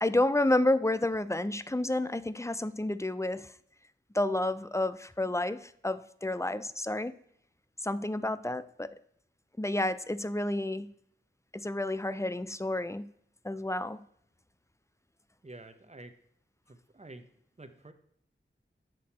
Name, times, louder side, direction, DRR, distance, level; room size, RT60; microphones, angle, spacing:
voice 1, 0.0-3.5 4.1-7.1 7.8-8.9 9.6-10.9 11.5-13.1 13.4-14.0, left 1 dB, 15° left, 15 dB, 0.4 m, -30 dB
voice 2, 15.4-16.1 16.7-17.9, right 2 dB, 35° right, 8 dB, 0.9 m, -49 dB
7.6 x 6.4 x 4.2 m, 0.70 s
wide cardioid pair, 50°, 21 cm